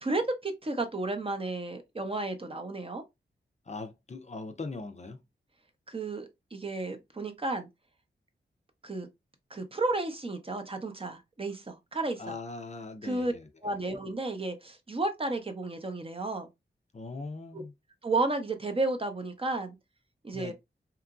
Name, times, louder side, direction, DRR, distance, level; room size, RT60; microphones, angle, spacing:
voice 1, 0.0-3.0 5.9-7.7 8.8-9.1 9.5-12.3 13.0-13.3 13.6-16.5 17.5-17.6 18.0-19.8 20.2-20.5, right 2 dB, 30° right, 0.6 m, -32 dB
voice 2, 3.7-5.2 12.2-13.5 16.9-17.7 20.3-20.5, left 3 dB, 35° left, 0.4 m, -40 dB
2.9 x 2.4 x 2.3 m
wide cardioid pair, 85°, 20 cm